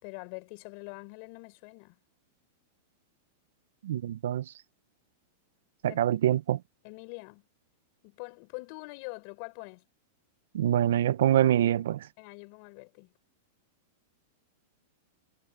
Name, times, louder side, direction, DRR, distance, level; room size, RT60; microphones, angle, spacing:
voice 1, 0.0-2.0 5.9-6.0 6.8-7.5 8.0-9.8 12.2-13.1, left 31 dB, 50° left, 5.3 m, -44 dB
voice 2, 3.8-4.4 5.8-6.6 10.5-12.0, right 11 dB, 80° right, 0.9 m, -25 dB
supercardioid pair, 140°, 0 cm